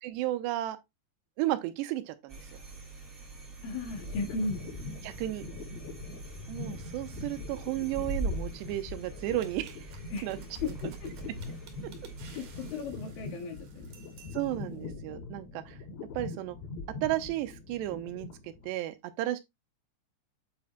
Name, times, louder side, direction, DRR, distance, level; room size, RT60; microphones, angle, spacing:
voice 1, 0.0-0.8 1.4-2.6 5.0-5.4 6.5-9.8 10.2-10.4 14.3-15.8 16.2-16.6 17.0-19.4, right 15 dB, 90° right, 2.9 m, -33 dB
sound 1, 2.3-12.8, right 2 dB, 15° right, 3.9 m, -42 dB
sound 2, 3.3-18.8, left 3 dB, 80° left, 3.8 m, -43 dB
voice 2, 3.6-4.6 10.1-10.3 10.6-11.1 12.3-13.7, left 3 dB, 60° left, 3.2 m, -35 dB
sound 3, 9.4-14.7, right 6 dB, 60° right, 3.0 m, -55 dB
8.5 x 8.2 x 2.3 m
omnidirectional pair, 4.8 m